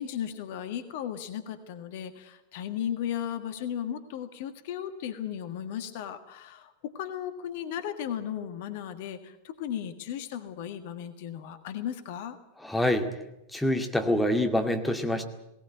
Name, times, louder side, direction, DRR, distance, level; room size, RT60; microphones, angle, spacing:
voice 1, 0.0-12.4, left 9 dB, 50° left, 9 dB, 1.6 m, -35 dB
voice 2, 12.6-13.1 13.5-15.2, left 1 dB, 5° left, 4 dB, 2.2 m, -26 dB
18.5 x 18.5 x 9.2 m, 0.90 s
figure-of-eight pair, 90°, 0 cm